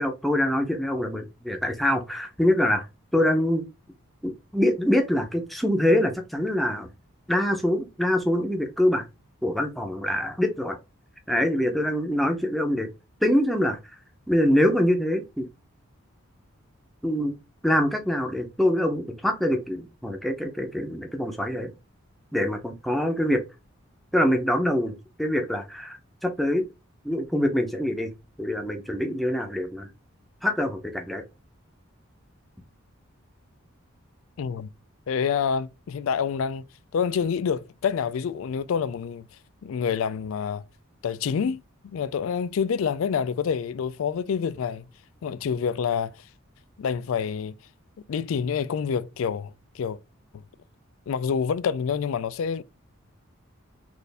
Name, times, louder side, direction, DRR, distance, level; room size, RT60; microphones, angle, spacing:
voice 1, 0.0-2.9 3.1-3.6 4.2-6.9 7.3-9.1 9.4-10.8 11.3-12.9 13.2-13.8 14.3-15.5 17.0-17.3 17.6-21.7 22.3-23.4 24.1-26.0 26.2-26.6 27.0-28.1 28.4-29.9 30.4-31.2, left 1 dB, ahead, 0.6 m, -24 dB
voice 2, 34.4-34.7 35.1-36.6 36.9-39.3 39.6-40.6 41.0-44.8 45.2-46.1 46.8-47.5 48.1-50.0 51.1-52.6, left 6 dB, 70° left, 0.3 m, -27 dB
4.3 x 2.6 x 3.4 m
head